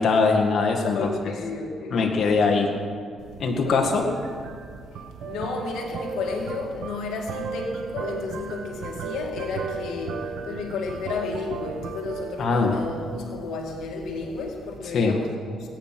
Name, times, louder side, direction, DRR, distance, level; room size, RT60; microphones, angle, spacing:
voice 1, 0.0-1.0 1.9-2.7 3.4-4.1 12.4-12.7 14.9-15.1, left 4 dB, 55° left, 2 dB, 1.9 m, -21 dB
voice 2, 0.8-2.4 3.6-4.1 4.9-15.7, left 4 dB, 80° left, 1 dB, 2.0 m, -32 dB
sound 1, 3.2-14.8, right 5 dB, 75° right, 1.1 m, -36 dB
19.5 x 9.3 x 6.0 m, 2.3 s
cardioid pair, 90°, 0 cm